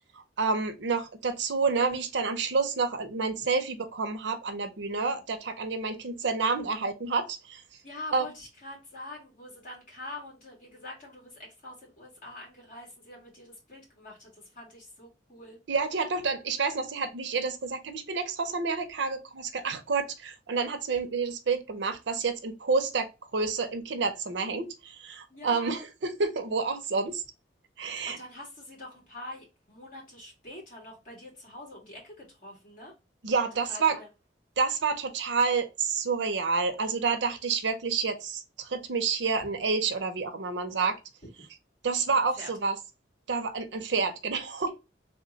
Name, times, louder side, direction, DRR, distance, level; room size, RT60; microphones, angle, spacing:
voice 1, 0.4-7.6 8.1-8.3 15.7-27.2 27.8-28.2 33.2-34.0 34.6-41.0 41.8-42.8 43.3-44.7, right 4 dB, 80° right, 0.6 m, -29 dB
voice 2, 7.8-15.6 25.3-25.8 28.1-32.9 33.7-34.1 42.4-42.5, left 1 dB, 50° left, 2.0 m, -45 dB
3.3 x 2.2 x 3.8 m
head